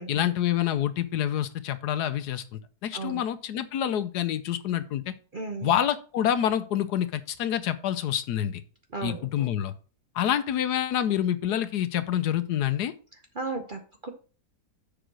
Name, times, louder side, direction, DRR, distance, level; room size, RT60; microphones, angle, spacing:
voice 1, 0.1-5.1 5.6-8.6 9.0-9.7 10.1-12.9, left 10 dB, 75° left, 12 dB, 1.2 m, -27 dB
voice 2, 5.3-5.7 8.9-9.5 13.3-14.1, right 3 dB, 40° right, 4 dB, 0.7 m, -35 dB
6.9 x 5.0 x 6.2 m, 0.37 s
omnidirectional pair, 1.9 m